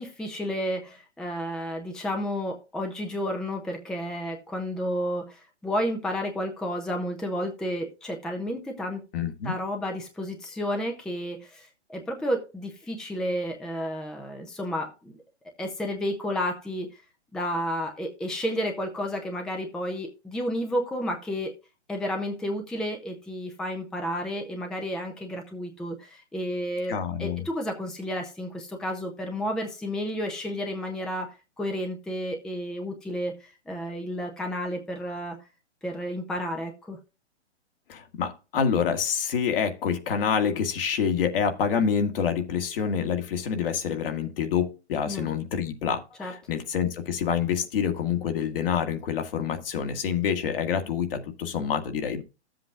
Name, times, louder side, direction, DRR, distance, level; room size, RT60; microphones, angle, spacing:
voice 1, 0.0-9.0 9.4-15.1 15.6-17.0 17.3-21.5 21.9-35.4 35.8-37.0 45.1-45.3 46.2-46.3, equal, ahead, 4 dB, 0.6 m, -31 dB
voice 2, 9.1-9.6 26.9-27.4 37.9-52.2, left 7 dB, 50° left, 6 dB, 1.9 m, -27 dB
13.0 x 7.7 x 2.4 m, 0.29 s
hypercardioid pair, 140°, 35 cm